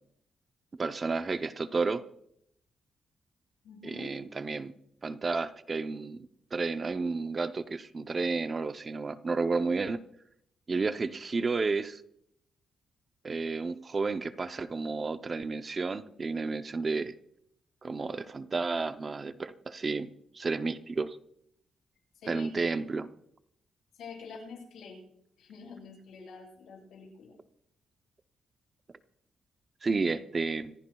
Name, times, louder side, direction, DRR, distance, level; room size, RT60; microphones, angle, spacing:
voice 1, 0.8-2.0 3.8-4.7 5.0-10.0 10.7-12.0 13.2-17.1 17.8-21.2 22.3-23.1 29.8-30.7, right 4 dB, 30° right, 10 dB, 0.6 m, -31 dB
voice 2, 3.6-4.2 22.1-22.5 23.9-25.0 25.4-27.4, left 4 dB, 80° left, -1 dB, 7.8 m, -46 dB
26.0 x 15.0 x 2.3 m, 0.72 s
cardioid pair, 145°, 0 cm